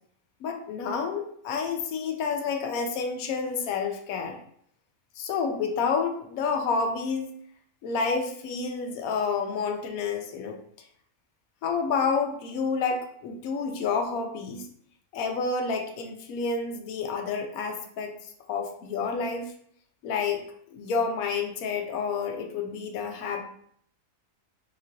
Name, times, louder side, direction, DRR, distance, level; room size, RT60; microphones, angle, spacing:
voice 1, 0.4-4.4 5.2-7.3 7.8-10.6 11.6-14.7 15.1-18.1 18.5-19.5 20.0-23.4, left 5 dB, 80° left, 4 dB, 1.1 m, -29 dB
4.1 x 3.7 x 2.6 m, 0.65 s
omnidirectional pair, 1.5 m